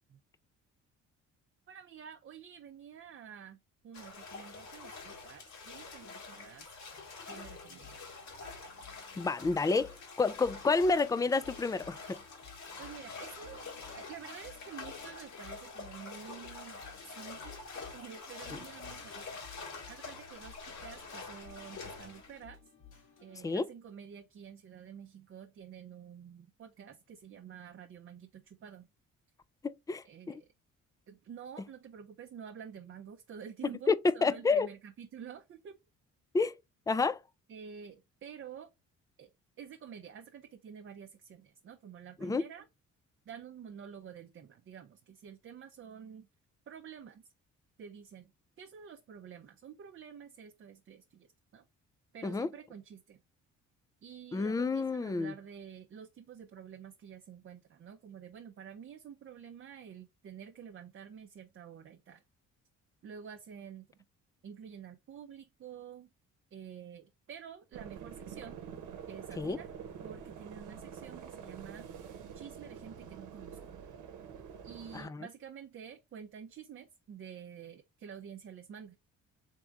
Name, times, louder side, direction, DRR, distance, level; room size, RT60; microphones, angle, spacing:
voice 1, 1.7-3.6 3.8-6.7 7.3-8.0 12.8-16.8 17.2-17.6 17.9-19.4 19.7-22.6 23.2-28.9 30.0-30.5 31.1-35.8 37.5-38.7 39.2-39.3 39.6-42.7 43.3-46.3 46.7-47.2 47.8-48.3 48.6-51.3 51.5-51.6 52.1-53.2 54.0-62.2 63.0-63.9 64.4-66.1 66.5-68.6 69.1-69.7 70.0-71.9 72.3-73.8 74.6-79.0, right 8 dB, 45° right, 0.6 m, -49 dB
sound 1, 3.9-22.4, left 4 dB, 70° left, 1.8 m, -47 dB
sound 2, 7.4-23.4, left 6 dB, 85° left, 2.0 m, -56 dB
voice 2, 9.2-12.2 18.5-18.6 23.4-23.7 29.6-30.4 33.9-34.7 36.3-36.6 36.9-37.2 42.2-42.4 52.2-52.5 54.3-55.3 69.4-69.6 74.9-75.3, left 4 dB, 10° left, 0.3 m, -29 dB
sound 3, 67.7-75.0, right 7 dB, 80° right, 0.9 m, -47 dB
3.6 x 3.3 x 3.5 m
cardioid pair, 90°, 30 cm